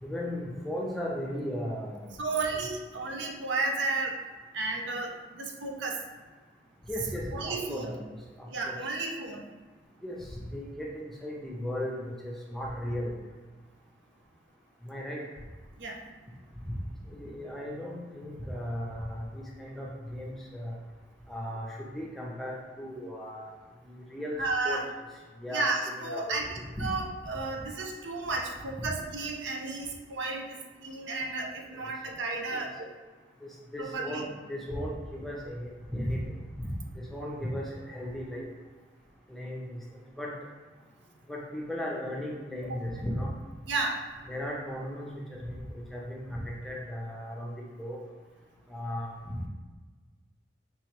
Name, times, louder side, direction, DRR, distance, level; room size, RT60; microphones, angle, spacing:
voice 1, 0.0-2.2 2.5-2.6 6.9-8.0 8.4-8.7 10.0-13.1 14.8-15.2 17.0-20.8 21.3-23.5 23.8-24.4 24.6-24.8 25.4-25.7 26.0-26.4 26.7-26.9 31.7-31.8 32.5-32.6 33.4-36.7 37.0-38.5 39.3-40.3 41.3-43.3 44.3-47.5 47.8-48.0 48.7-49.4, equal, ahead, -4 dB, 0.6 m, -36 dB
voice 2, 2.2-4.2 4.5-6.0 7.3-7.9 8.5-9.4 15.8-16.0 24.4-24.9 25.5-26.5 26.8-32.9 33.8-34.3 42.7-42.8 43.7-44.1, right 3 dB, 85° right, 1 dB, 0.6 m, -33 dB
4.6 x 3.1 x 3.0 m, 1.3 s
head